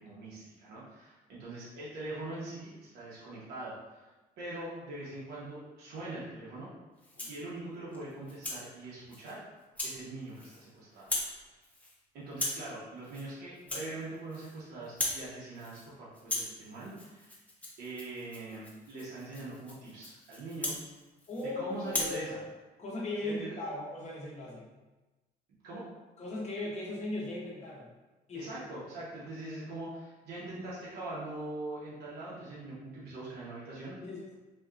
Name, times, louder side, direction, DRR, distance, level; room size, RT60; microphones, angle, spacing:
voice 1, 0.0-4.1 4.4-6.7 7.3-9.4 9.8-11.5 12.1-17.3 17.8-20.7 21.5-22.4 23.2-23.6 25.6-25.9 28.3-33.9, right 2 dB, 70° right, -8 dB, 1.1 m, -42 dB
Rattle (instrument), 7.0-7.4 7.9-8.6 9.1-9.3 9.7-10.0 10.3-10.7 11.0-11.4 11.6-11.9 12.3-12.7 13.0-13.3 13.6-14.6 14.8-15.3 15.6-15.9 16.1-21.5 21.8-22.2, left 2 dB, 10° left, 0.8 m, -38 dB
voice 2, 21.3-22.4 22.8-24.7 26.2-27.9 28.3-28.6 34.0-34.2, left 2 dB, 40° left, -4 dB, 1.0 m, -38 dB
4.2 x 2.8 x 2.5 m, 1.1 s
cardioid pair, 110°, 17 cm